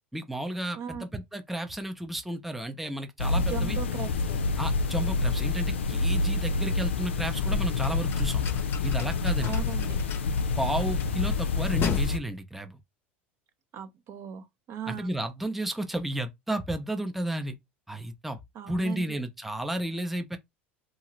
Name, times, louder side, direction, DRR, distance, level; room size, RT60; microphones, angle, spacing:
voice 1, 0.1-3.8 4.6-8.4 8.8-9.5 10.6-12.8 14.9-17.5 17.9-18.4 18.7-20.4, right 1 dB, 5° right, 0.6 m, -32 dB
voice 2, 0.8-1.1 3.4-4.4 9.4-10.0 13.7-15.1 18.5-19.2, right 9 dB, 50° right, 0.7 m, -38 dB
sound 1, 3.2-12.2, left 4 dB, 90° left, 0.4 m, -27 dB
sound 2, 7.0-12.0, left 7 dB, 40° left, 0.6 m, -37 dB
2.7 x 2.4 x 3.0 m
hypercardioid pair, 85°, 6 cm